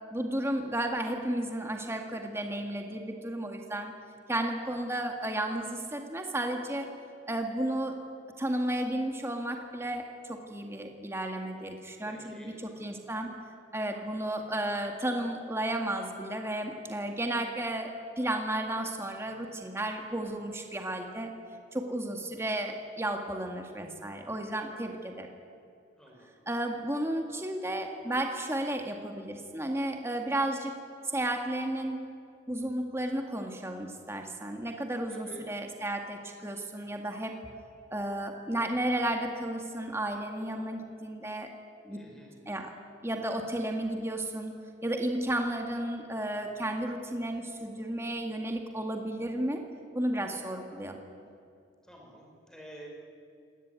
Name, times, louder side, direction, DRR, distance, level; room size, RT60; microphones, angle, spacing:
voice 1, 0.1-3.9 4.3-6.9 7.3-8.0 8.4-13.3 13.7-17.9 18.2-21.3 21.7-25.3 26.5-30.7 31.1-32.0 32.5-37.4 37.9-41.5 41.8-42.0 42.5-42.7 43.0-44.5 44.8-49.6 49.9-51.0, right 1 dB, 15° right, 3 dB, 1.9 m, -33 dB
voice 2, 12.0-12.6 26.0-26.3 35.1-35.5 41.9-42.4 51.8-52.9, equal, 5° left, -1 dB, 5.7 m, -49 dB
26.0 x 18.5 x 9.6 m, 2.4 s
head